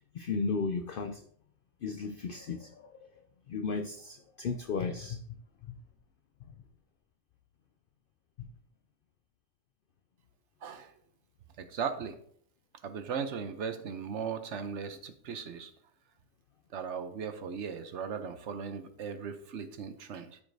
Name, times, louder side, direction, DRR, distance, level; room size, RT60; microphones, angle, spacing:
voice 1, 0.1-1.2 1.8-2.9 3.5-5.2 5.7-5.8, left 4 dB, 80° left, 0.4 m, -34 dB
voice 2, 10.6-10.9 11.6-12.2 12.8-15.7 16.7-20.4, right 6 dB, 60° right, 0.9 m, -37 dB
12.5 x 4.9 x 2.6 m
omnidirectional pair, 1.5 m